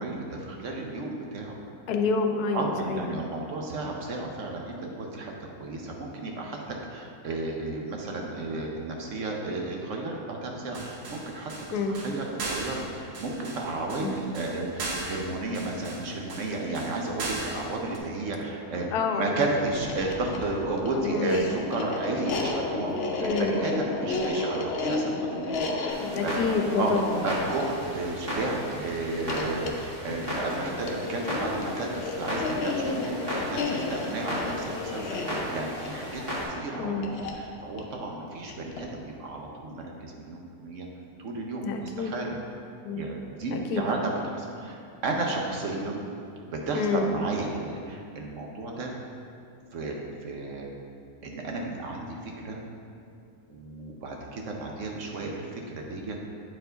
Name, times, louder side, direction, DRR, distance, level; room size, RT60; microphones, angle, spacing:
voice 1, 0.0-1.6 2.5-5.3 5.6-26.4 26.8-26.9 27.2-31.9 32.2-36.2 36.5-37.1 37.3-40.9 41.2-42.4 43.0-46.0 46.4-48.9 49.7-50.7 51.2-52.6 53.5-55.5 55.7-56.2, right 2 dB, 60° right, 0 dB, 1.0 m, -33 dB
voice 2, 1.9-3.1 11.7-12.0 14.0-14.2 18.9-19.5 20.9-21.5 23.2-23.6 26.0-27.2 36.8-37.1 41.6-42.1 42.8-43.1 43.5-43.8 46.7-47.1, left 4 dB, 85° left, 4 dB, 1.2 m, -28 dB
sound 1, 10.7-18.0, right 2 dB, 85° right, 1.4 m, -37 dB
sound 2, 19.7-39.0, left 3 dB, 55° left, 0.7 m, -33 dB
Clock, 25.9-36.5, equal, 35° right, 2.1 m, -36 dB
8.6 x 4.6 x 3.9 m, 2.6 s
omnidirectional pair, 1.6 m